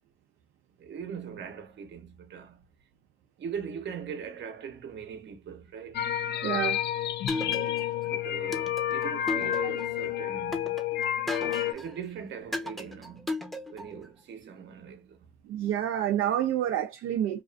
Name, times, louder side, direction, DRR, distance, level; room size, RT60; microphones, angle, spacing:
voice 1, 0.8-2.7 3.4-6.0 8.0-10.8 11.7-13.4 13.7-15.3, right 7 dB, 65° right, 0.8 m, -41 dB
sound 1, 5.9-11.7, left 12 dB, 60° left, 0.4 m, -30 dB
voice 2, 6.4-6.8 9.6-9.7 15.4-17.4, right 11 dB, 80° right, 0.4 m, -28 dB
sound 2, 7.3-8.0 8.5-10.0 10.5-11.9 12.5-14.0, left 2 dB, ahead, 0.6 m, -35 dB
2.4 x 2.4 x 2.3 m
cardioid pair, 90°, 20 cm